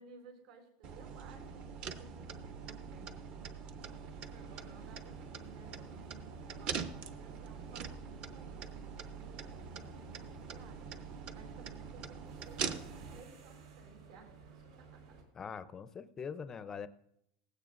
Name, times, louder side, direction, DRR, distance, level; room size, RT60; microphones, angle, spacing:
voice 1, 0.0-3.2 4.5-15.2, right 5 dB, 75° right, 3 dB, 4.1 m, -58 dB
sound 1, 0.8-13.2, right 6 dB, 30° right, 0.6 m, -44 dB
sound 2, 3.8-15.2, right 5 dB, 90° right, 4.1 m, -57 dB
voice 2, 15.4-16.9, left 6 dB, 15° left, 13 dB, 0.5 m, -43 dB
18.5 x 16.0 x 2.5 m, 0.75 s
supercardioid pair, 180°, 3 cm